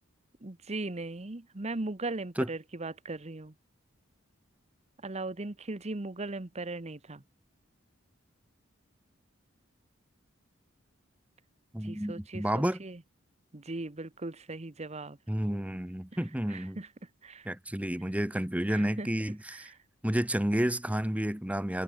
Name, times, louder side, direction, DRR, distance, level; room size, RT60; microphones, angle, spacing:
voice 1, 0.4-3.5 5.0-7.2 11.8-13.0 13.5-15.2 16.5-16.9 17.2-17.5 18.7-19.1 19.5-19.8, right 2 dB, 35° right, 1.1 m, -38 dB
voice 2, 11.7-12.8 15.3-16.8 17.4-19.7 20.0-21.8, equal, 5° right, 1.0 m, -30 dB
head